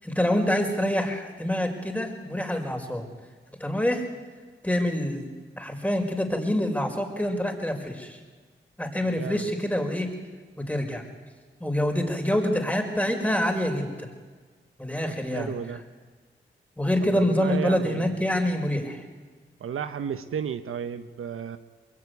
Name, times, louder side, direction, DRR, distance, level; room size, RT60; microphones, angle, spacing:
voice 1, 0.0-3.0 3.6-4.0 4.6-5.2 5.6-8.2 8.8-10.1 10.6-11.0 11.6-14.1 14.8-15.5 16.8-19.0, left 1 dB, 5° left, 4 dB, 5.0 m, -26 dB
voice 2, 9.0-9.5 15.1-15.8 17.1-18.2 19.6-21.6, right 7 dB, 85° right, 10 dB, 1.0 m, -33 dB
22.5 x 22.5 x 9.5 m, 1.4 s
cardioid pair, 45°, 21 cm